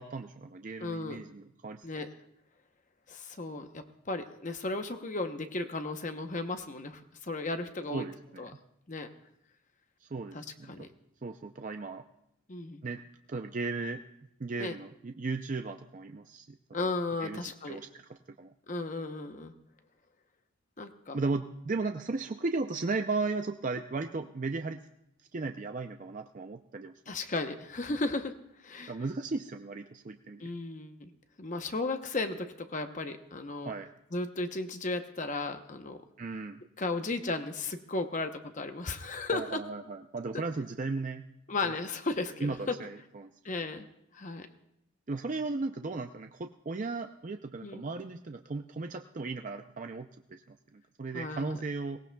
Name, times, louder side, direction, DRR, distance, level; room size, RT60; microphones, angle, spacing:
voice 1, 0.0-1.9 7.9-8.4 10.0-10.9 11.2-12.0 12.8-13.0 13.3-14.0 14.4-16.9 17.2-18.5 21.1-24.8 25.3-26.9 28.9-30.5 33.7-33.9 36.2-36.6 39.3-41.3 41.6-41.7 42.4-43.3 45.1-52.0, right 3 dB, 35° right, 5 dB, 0.4 m, -36 dB
voice 2, 0.8-1.2 1.8-2.2 3.1-8.1 8.4-8.5 8.9-9.1 10.3-10.9 12.5-12.8 14.6-14.8 16.7-17.8 18.7-19.5 20.8-21.2 27.1-28.9 30.4-31.1 31.4-33.7 34.1-36.0 36.8-39.6 41.5-42.8 43.4-43.9 44.1-44.5 47.6-47.8 51.1-51.6, left 3 dB, 35° left, 7 dB, 0.8 m, -35 dB
23.0 x 18.0 x 2.3 m, 0.79 s
head